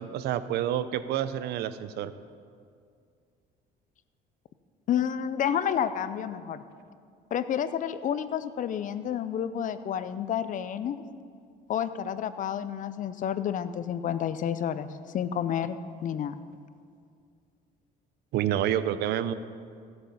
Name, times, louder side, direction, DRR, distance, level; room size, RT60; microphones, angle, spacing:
voice 1, 0.0-2.1 18.3-19.3, right 11 dB, 75° right, 13 dB, 0.6 m, -28 dB
voice 2, 4.9-6.6 7.3-11.0 11.7-16.3, left 9 dB, 50° left, 13 dB, 0.6 m, -30 dB
16.5 x 7.9 x 5.5 m, 2.3 s
cardioid pair, 110°, 17 cm